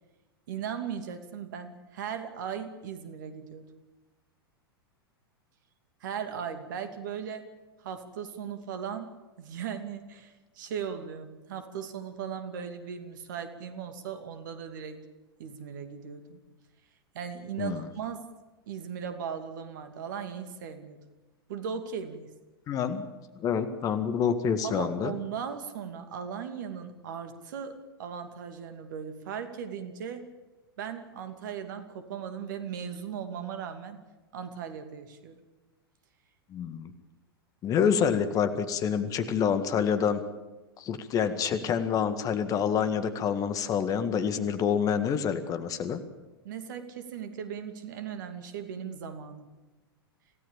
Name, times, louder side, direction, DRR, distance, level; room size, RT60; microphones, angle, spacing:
voice 1, 0.5-3.6 6.0-7.4 7.8-15.0 15.4-16.4 17.1-18.2 18.7-21.0 21.5-22.3 24.6-30.2 30.8-34.0 34.3-35.4 46.4-49.5, right 7 dB, 55° right, 8 dB, 2.7 m, -38 dB
voice 2, 22.7-23.1 23.4-25.1 36.5-36.9 37.6-40.2 40.8-46.0, left 7 dB, 30° left, 11 dB, 1.8 m, -27 dB
27.0 x 17.0 x 7.3 m, 1.1 s
figure-of-eight pair, 95°, 13 cm